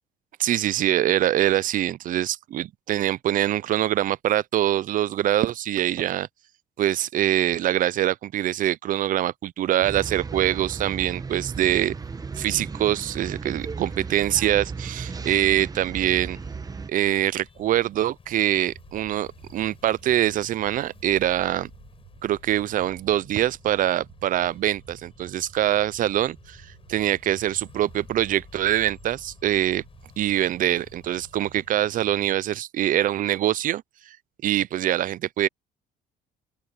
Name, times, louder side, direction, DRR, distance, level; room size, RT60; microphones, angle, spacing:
voice 1, 0.4-6.3 6.8-12.0 12.4-16.4 16.9-21.7 22.2-29.8 30.2-34.2 34.4-35.5, right 12 dB, 55° right, 0.5 m, -24 dB
sound 1, 9.8-16.9, right 5 dB, 20° right, 1.0 m, -35 dB
sound 2, 12.0-31.7, left 5 dB, 35° left, 5.6 m, -52 dB
sound 3, 18.6-32.4, right 14 dB, 80° right, 5.2 m, -53 dB
open air
cardioid pair, 110°, 17 cm